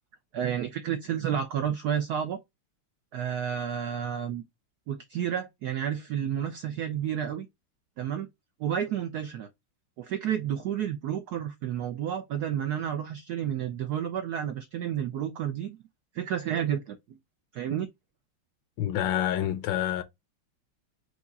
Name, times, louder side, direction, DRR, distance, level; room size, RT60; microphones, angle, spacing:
voice 1, 0.3-2.4 3.1-4.4 4.9-7.5 8.0-8.3 8.6-9.5 10.0-15.8 16.1-17.0 17.5-17.9, right 9 dB, 85° right, 0.8 m, -31 dB
voice 2, 18.8-20.0, left 11 dB, 75° left, 1.3 m, -27 dB
4.8 x 2.4 x 3.9 m
omnidirectional pair, 2.3 m